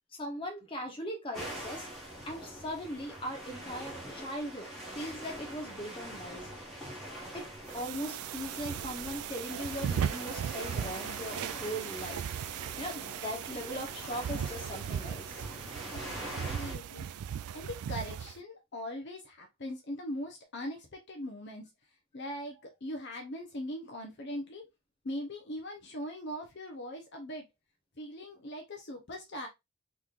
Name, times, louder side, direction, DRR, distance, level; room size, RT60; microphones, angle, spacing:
voice 1, 0.2-1.9 2.2-4.7 4.9-6.5 7.3-12.2 12.8-15.4, equal, 25° left, 0.9 m, -39 dB
sound 1, 1.3-16.8, right 1 dB, ahead, 1.3 m, -44 dB
sound 2, 7.7-18.4, right 8 dB, 80° right, 0.3 m, -37 dB
voice 2, 15.7-17.0 17.5-21.7 22.1-24.7 25.0-27.5 28.0-29.5, equal, 50° left, 0.6 m, -41 dB
3.7 x 3.0 x 2.4 m
head